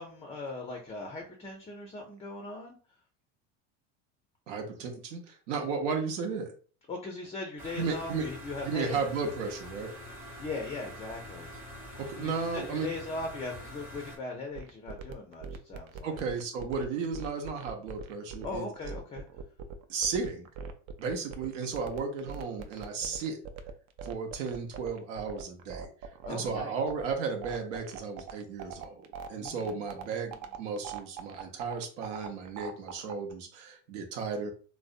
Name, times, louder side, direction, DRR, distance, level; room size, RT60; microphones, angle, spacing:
voice 1, 0.0-2.8 6.9-9.3 10.4-11.5 12.2-16.2 18.4-19.2 23.0-23.2 26.2-26.7 29.3-30.3, left 3 dB, 20° left, 2 dB, 0.4 m, -39 dB
voice 2, 4.5-6.5 7.8-8.3 8.6-9.9 12.0-12.9 16.0-18.7 19.9-20.5 21.0-23.4 24.0-25.9 26.3-34.5, right 5 dB, 75° right, 3 dB, 0.7 m, -34 dB
sound 1, 7.6-14.2, left 1 dB, 5° right, 0.8 m, -45 dB
sound 2, 14.5-33.3, right 7 dB, 45° right, 0.4 m, -41 dB
2.5 x 2.1 x 2.4 m, 0.41 s
hypercardioid pair, 95°, 37 cm